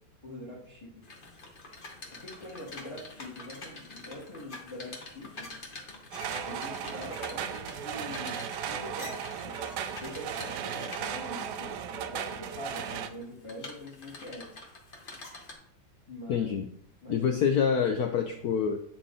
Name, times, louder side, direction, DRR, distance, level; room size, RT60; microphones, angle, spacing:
voice 1, 0.2-1.0 2.1-5.6 6.4-9.6 10.0-14.5 15.0-15.2 16.1-16.5 17.0-17.2, left 1 dB, 15° left, -5 dB, 1.3 m, -44 dB
sound 1, 1.0-11.3 11.9-12.3 12.7-15.5, left 2 dB, 35° left, 0.9 m, -46 dB
sound 2, 6.1-13.1, right 8 dB, 75° right, 1.0 m, -36 dB
voice 2, 16.3-16.6 17.1-18.8, left 7 dB, 80° left, 5 dB, 0.8 m, -26 dB
8.8 x 4.0 x 3.7 m, 0.71 s
omnidirectional pair, 2.2 m